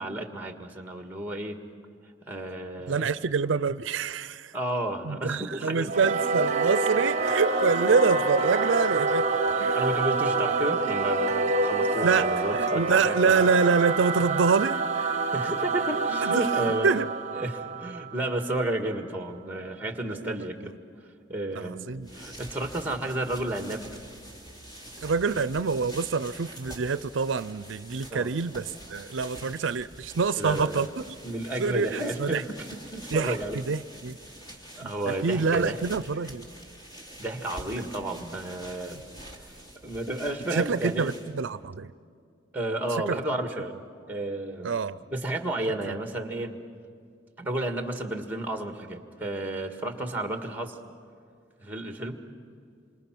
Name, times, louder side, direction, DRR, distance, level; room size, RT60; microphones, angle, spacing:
voice 1, 0.0-1.6 2.3-3.1 4.5-5.9 9.7-13.5 15.3-16.9 17.4-20.7 21.3-21.9 22.1-23.8 28.1-28.3 30.4-30.9 31.2-32.6 32.9-33.6 34.7-35.8 37.2-39.0 39.8-41.1 42.5-43.7 44.1-44.7 45.1-46.6 47.4-50.8 51.6-52.2, right 1 dB, 10° right, 5 dB, 1.7 m, -32 dB
voice 2, 2.9-4.5 5.0-9.3 9.6-9.8 12.0-15.3 16.2-16.5 16.8-17.1 20.1-20.5 21.5-22.1 25.0-31.2 31.6-32.4 33.1-34.2 34.8-36.5 40.5-41.9 43.1-43.2 44.6-45.0 45.9-46.0, right 5 dB, 80° right, 15 dB, 0.5 m, -26 dB
Singing / Musical instrument, 5.9-18.8, right 3 dB, 40° right, 1.0 m, -27 dB
sound 1, 21.9-41.5, right 1 dB, 20° left, 2.8 m, -46 dB
27.5 x 25.0 x 6.0 m, 2.3 s
head